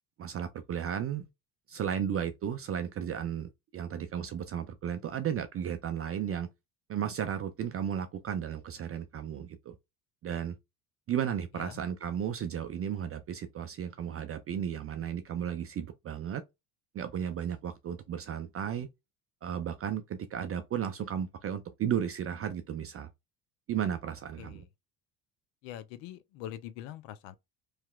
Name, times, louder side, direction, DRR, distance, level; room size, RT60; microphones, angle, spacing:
voice 1, 0.2-1.3 1.7-6.5 6.9-9.8 10.2-10.6 11.1-16.4 16.9-18.9 19.4-23.1 23.7-24.6, right 9 dB, 30° right, 0.4 m, -34 dB
voice 2, 25.6-27.4, left 11 dB, 70° left, 0.6 m, -43 dB
3.2 x 2.8 x 2.2 m
hypercardioid pair, 75°, 46 cm